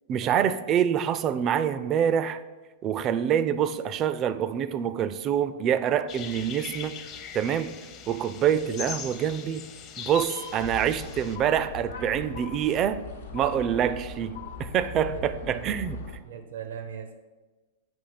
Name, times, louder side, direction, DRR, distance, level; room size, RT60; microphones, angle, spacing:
voice 1, 0.1-2.4 2.8-7.0 7.3-7.7 8.1-9.6 10.0-13.0 13.3-16.0, right 9 dB, 35° right, 13 dB, 0.4 m, -26 dB
sound 1, 6.1-11.4, left 7 dB, 40° left, 0.7 m, -40 dB
sound 2, 10.3-11.0 11.3-12.0 12.3-13.0 13.3-14.0 14.3-15.0, left 13 dB, 65° left, 0.3 m, -45 dB
sound 3, 10.6-16.2, left 3 dB, 80° left, 0.8 m, -40 dB
voice 2, 15.1-15.8 16.2-17.1, right 8 dB, 75° right, 7 dB, 0.6 m, -39 dB
7.1 x 2.8 x 5.7 m, 1.2 s
hypercardioid pair, 115°, 0 cm